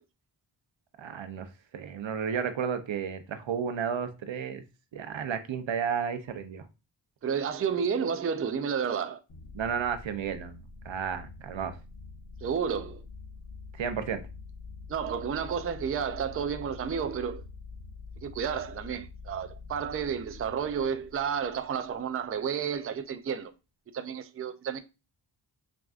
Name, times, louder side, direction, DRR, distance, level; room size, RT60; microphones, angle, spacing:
voice 1, 1.0-1.5 1.7-4.6 4.9-6.6 9.5-11.8 13.8-14.2, right 7 dB, 80° right, 0.7 m, -32 dB
voice 2, 7.2-9.2 12.4-13.0 14.9-17.4 18.2-23.5 23.9-24.8, right 7 dB, 35° right, 0.4 m, -31 dB
sound 1, 9.3-22.2, left 4 dB, 75° left, 1.2 m, -46 dB
5.9 x 2.5 x 2.4 m
wide cardioid pair, 100°, 45 cm